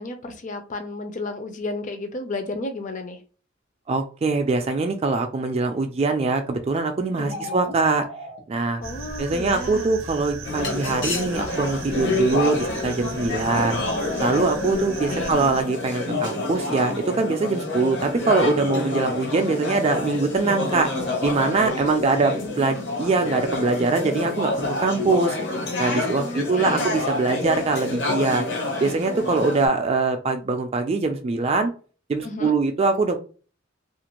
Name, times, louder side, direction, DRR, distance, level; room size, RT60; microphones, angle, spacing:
voice 1, 0.0-3.2 7.2-7.8 8.8-9.9 13.3-13.9 15.1-15.3 21.7-22.9 26.2-26.9 32.2-32.5, left 2 dB, 40° left, 7 dB, 0.5 m, -33 dB
voice 2, 3.9-8.1 8.5-8.8 9.2-13.8 14.2-20.9 21.2-25.4 25.8-28.4 28.8-31.7 32.1-33.2, right 3 dB, 30° right, 6 dB, 0.3 m, -23 dB
sound 1, 7.2-8.4, left 1 dB, 85° left, 1.0 m, -37 dB
sound 2, 8.8-15.6, right 4 dB, 85° right, 0.5 m, -37 dB
sound 3, 10.4-29.7, left 2 dB, 60° left, 0.8 m, -28 dB
2.5 x 2.1 x 2.9 m, 0.38 s
head